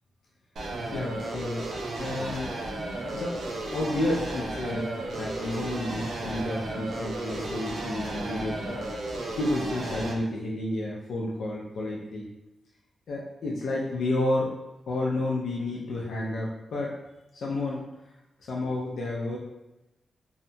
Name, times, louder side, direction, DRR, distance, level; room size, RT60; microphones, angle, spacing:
sound 1, 0.6-10.1, right 2 dB, 70° right, 0.5 m, -34 dB
voice 1, 0.9-1.7 2.0-2.6 3.1-3.4 3.7-8.9 9.4-12.3 13.1-14.5 14.9-17.0 17.3-17.9 18.4-19.4, left 2 dB, 70° left, -4 dB, 0.4 m, -31 dB
2.7 x 2.2 x 2.6 m, 0.95 s
wide cardioid pair, 170°, 0 cm